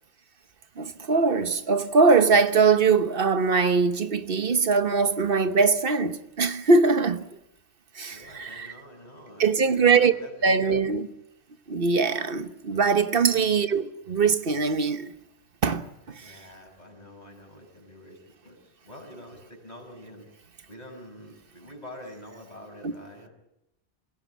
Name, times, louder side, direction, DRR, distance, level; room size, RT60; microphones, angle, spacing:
voice 1, 0.8-7.3 7.9-8.7 9.4-10.1 10.4-11.1 11.7-15.1 15.6-16.3 22.8-22.9, right 4 dB, 60° right, 1.3 m, -22 dB
voice 2, 8.1-10.8 13.1-13.4 16.2-20.3 20.7-23.3, left 1 dB, 40° left, 6.1 m, -46 dB
26.5 x 16.5 x 9.3 m
omnidirectional pair, 1.1 m